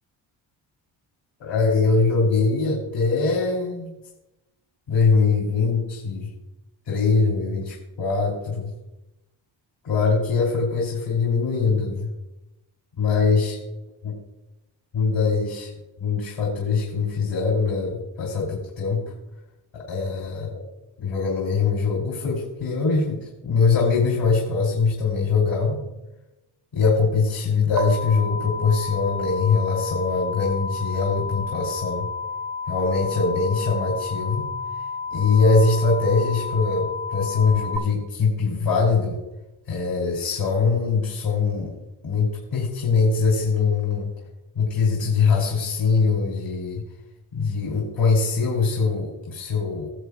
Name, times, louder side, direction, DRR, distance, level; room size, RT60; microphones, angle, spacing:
voice 1, 1.4-4.0 4.9-6.3 6.9-8.7 9.8-12.1 13.0-13.6 14.0-14.1 14.9-15.7 16.0-19.0 19.7-20.6 21.0-25.8 26.7-32.1 32.7-34.5 35.1-39.2 39.7-41.7 42.0-44.1 44.5-46.8 47.3-49.9, left 4 dB, 70° left, -4 dB, 3.1 m, -22 dB
sound 1, 27.8-37.8, left 4 dB, 50° right, 0.7 m, -31 dB
18.5 x 7.1 x 2.4 m, 0.97 s
cardioid pair, 85°, 48 cm